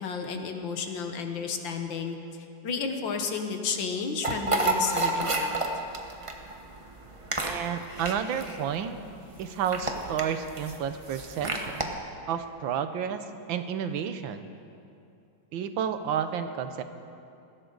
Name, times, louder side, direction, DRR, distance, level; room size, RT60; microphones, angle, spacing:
voice 1, 0.0-2.2 2.6-5.6, left 5 dB, 85° left, 5 dB, 2.0 m, -32 dB
sound 1, 4.2-11.8, right 2 dB, 25° right, 0.8 m, -30 dB
voice 2, 7.4-9.0 9.4-11.9 12.3-14.5 15.5-16.8, right 8 dB, 90° right, 9 dB, 1.6 m, -31 dB
20.5 x 16.0 x 4.0 m, 2.6 s
omnidirectional pair, 2.1 m